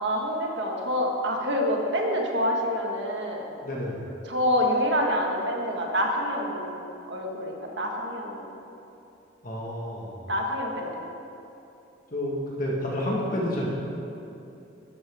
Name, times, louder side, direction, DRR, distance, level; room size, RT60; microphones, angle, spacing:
voice 1, 0.0-3.4 4.3-8.5 10.3-11.0, equal, 65° right, 0 dB, 1.7 m, -27 dB
voice 2, 3.6-4.1 9.4-10.2 12.1-13.7, left 1 dB, 45° left, -4 dB, 1.7 m, -30 dB
13.0 x 12.0 x 3.6 m, 2.8 s
head